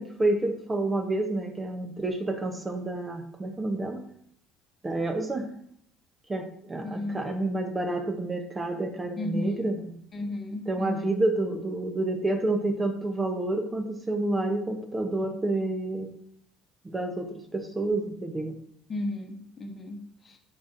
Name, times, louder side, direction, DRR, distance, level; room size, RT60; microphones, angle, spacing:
voice 1, 0.0-4.0 4.8-5.5 6.3-9.8 10.7-16.1 16.8-18.6, right 2 dB, 25° right, 6 dB, 0.9 m, -29 dB
voice 2, 6.8-7.2 9.2-9.7 10.1-11.1 18.9-20.4, left 2 dB, 35° left, 4 dB, 1.0 m, -34 dB
9.3 x 4.2 x 2.6 m, 0.69 s
supercardioid pair, 80°, 0 cm